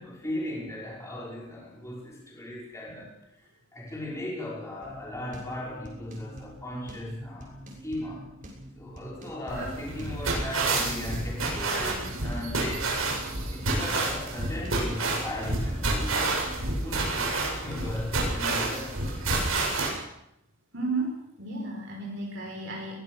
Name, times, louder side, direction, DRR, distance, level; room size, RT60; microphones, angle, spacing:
voice 1, 0.0-8.3 8.8-13.0 13.5-19.0, left 1 dB, 15° left, -4 dB, 5.6 m, -37 dB
sound 1, 4.8-16.2, equal, 40° right, 6.5 m, -46 dB
sound 2, 9.5-19.9, right 2 dB, 85° right, 7.8 m, -29 dB
voice 2, 20.7-23.0, right 3 dB, 60° right, -2 dB, 5.5 m, -33 dB
22.5 x 19.5 x 6.6 m, 0.84 s
head